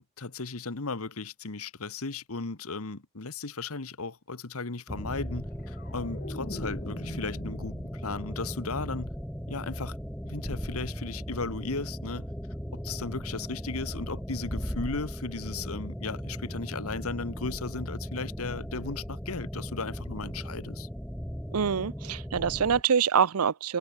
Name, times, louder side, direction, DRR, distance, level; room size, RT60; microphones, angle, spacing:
voice 1, 0.0-9.1 9.5-10.0 10.2-12.3 12.7-20.9, left 3 dB, 70° left, 1.4 m, -36 dB
sound 1, 4.9-22.8, equal, 5° left, 1.5 m, -37 dB
sound 2, 5.4-8.5 8.9-9.3, left 1 dB, 45° left, 2.2 m, -43 dB
voice 2, 21.5-23.8, right 7 dB, 80° right, 0.6 m, -25 dB
head